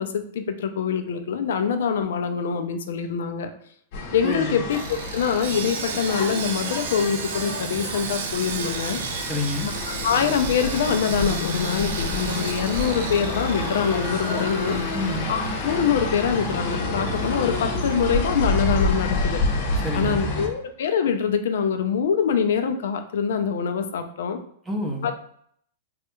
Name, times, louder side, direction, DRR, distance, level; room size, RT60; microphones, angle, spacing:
voice 1, 0.0-3.5 4.1-9.0 9.9-14.8 15.3-19.4 19.9-24.4 25.0-25.2, left 7 dB, 80° left, 7 dB, 0.4 m, -24 dB
sound 1, 3.9-20.5, left 2 dB, 50° left, 0.7 m, -28 dB
voice 2, 4.2-4.6 9.3-9.7 14.9-15.3 19.8-20.2 24.7-25.1, left 1 dB, 10° right, 1 dB, 0.6 m, -28 dB
Sawing, 4.7-19.0 19.2-19.4 19.9-20.0, right 6 dB, 70° right, 0.4 m, -35 dB
3.2 x 2.3 x 3.0 m, 0.65 s
supercardioid pair, 155°, 0 cm